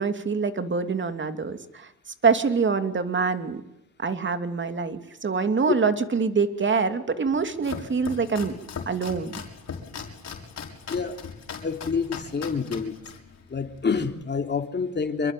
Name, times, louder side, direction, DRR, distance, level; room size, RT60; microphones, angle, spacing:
voice 1, 0.0-1.9 2.2-3.6 4.0-8.5 8.9-9.3, right 5 dB, 40° right, 9 dB, 2.7 m, -25 dB
Domestic sounds home sounds, 7.3-14.2, left 6 dB, 55° left, 5.5 m, -39 dB
voice 2, 11.6-12.9 13.5-15.3, left 5 dB, 35° left, 5 dB, 3.1 m, -27 dB
26.5 x 23.0 x 9.3 m, 0.82 s
cardioid pair, 85°, 30 cm